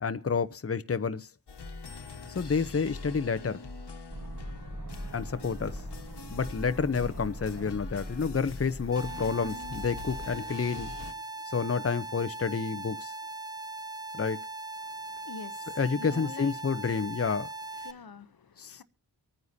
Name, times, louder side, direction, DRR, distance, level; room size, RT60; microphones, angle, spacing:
voice 1, 0.0-1.3 2.3-3.6 5.1-5.8 6.3-11.0 11.5-13.1 14.1-14.4 15.8-17.5 18.6-18.8, left 5 dB, 35° left, 0.8 m, -29 dB
sound 1, 1.5-11.1, left 3 dB, 80° left, 1.5 m, -43 dB
sound 2, 4.1-10.1, right 1 dB, 50° right, 4.5 m, -43 dB
sound 3, 8.9-17.9, right 2 dB, 10° right, 0.5 m, -40 dB
voice 2, 14.8-16.5 17.8-18.8, left 6 dB, 60° left, 0.9 m, -46 dB
24.5 x 9.5 x 2.7 m
wide cardioid pair, 65°, 40 cm